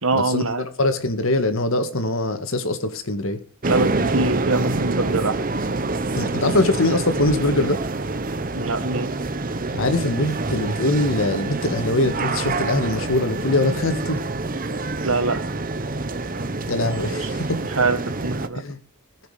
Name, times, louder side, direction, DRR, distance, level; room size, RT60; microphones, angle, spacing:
voice 1, 0.0-0.7 3.7-5.4 8.5-9.1 15.0-15.4 17.1-17.3 17.7-18.6, right 3 dB, 85° right, 9 dB, 1.7 m, -23 dB
voice 2, 0.8-3.4 6.1-7.8 9.7-14.2 16.7-17.5 18.5-18.8, left 2 dB, 75° left, 8 dB, 1.8 m, -22 dB
sound 1, 3.6-18.5, right 3 dB, 40° right, 0.9 m, -26 dB
19.5 x 6.6 x 5.0 m, 0.38 s
head